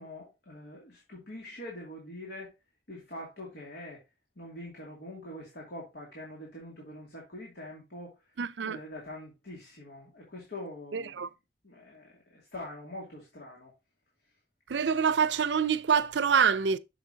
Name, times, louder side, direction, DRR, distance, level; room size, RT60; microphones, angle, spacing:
voice 1, 0.0-2.5 2.9-4.0 4.4-8.1 8.6-11.3 11.6-13.7, left 1 dB, 65° left, 2.5 m, -44 dB
voice 2, 8.4-8.8 10.9-11.3 14.7-16.8, right 6 dB, 75° right, 0.5 m, -26 dB
7.6 x 6.9 x 2.8 m
head